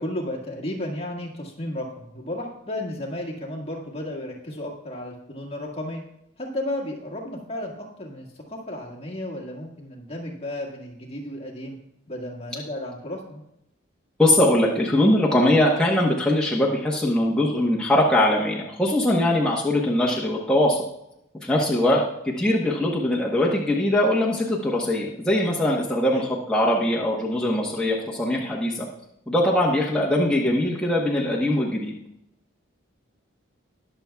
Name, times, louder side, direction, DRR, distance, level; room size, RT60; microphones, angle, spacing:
voice 1, 0.0-6.0 6.4-11.8 12.1-13.4 21.8-22.0 26.1-26.3, left 1 dB, 30° left, -2 dB, 1.8 m, -33 dB
voice 2, 14.2-20.8 21.4-22.0 22.4-28.9 29.3-31.9, left 1 dB, 5° left, -5 dB, 1.0 m, -21 dB
21.0 x 7.0 x 2.3 m, 0.81 s
head